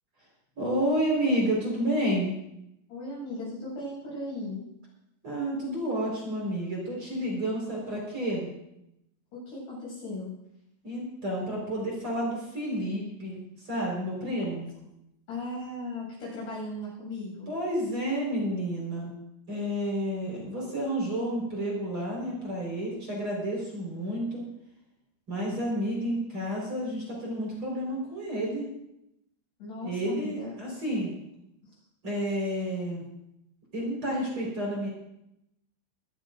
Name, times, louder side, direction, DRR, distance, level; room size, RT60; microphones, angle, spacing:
voice 1, 0.6-2.3 5.2-8.5 10.8-14.7 17.5-19.1 19.5-24.4 25.3-28.7 29.8-31.1 32.0-33.0 33.7-34.9, equal, 25° right, -3 dB, 5.0 m, -30 dB
voice 2, 2.9-4.6 9.3-10.3 15.3-17.5 29.6-30.5, left 1 dB, 60° left, -5 dB, 9.3 m, -37 dB
23.5 x 14.5 x 2.6 m, 0.82 s
omnidirectional pair, 5.8 m